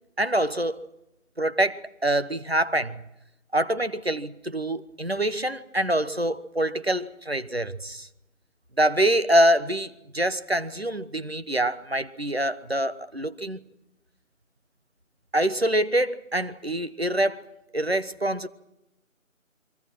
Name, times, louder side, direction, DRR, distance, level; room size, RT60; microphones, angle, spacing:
voice 1, 0.2-0.8 1.4-3.0 3.5-8.1 8.8-13.6 15.3-17.4 17.7-18.5, right 1 dB, 50° right, 1.2 m, -25 dB
27.5 x 24.0 x 6.2 m
figure-of-eight pair, 175°, 40 cm